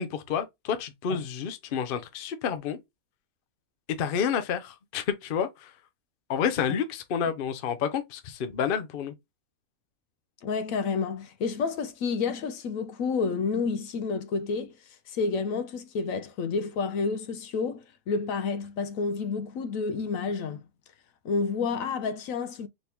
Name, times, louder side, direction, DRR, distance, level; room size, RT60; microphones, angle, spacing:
voice 1, 0.0-2.8 4.0-5.7 6.3-9.1, left 7 dB, 50° left, 0.7 m, -29 dB
voice 2, 10.4-14.7 15.1-20.6 21.2-22.7, left 5 dB, 70° left, 1.0 m, -30 dB
4.2 x 2.9 x 3.4 m
omnidirectional pair, 1.5 m